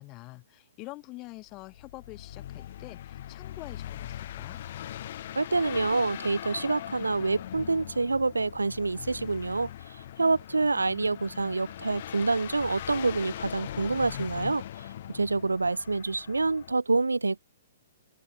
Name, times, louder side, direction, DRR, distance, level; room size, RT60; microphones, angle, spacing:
voice 1, 0.0-4.6, left 22 dB, 30° left, 5.3 m, -45 dB
sound 1, 1.5-16.7, left 12 dB, 50° left, 2.9 m, -41 dB
voice 2, 5.3-14.9 15.1-17.4, right 3 dB, 80° right, 1.2 m, -27 dB
open air
figure-of-eight pair, 120°, 0 cm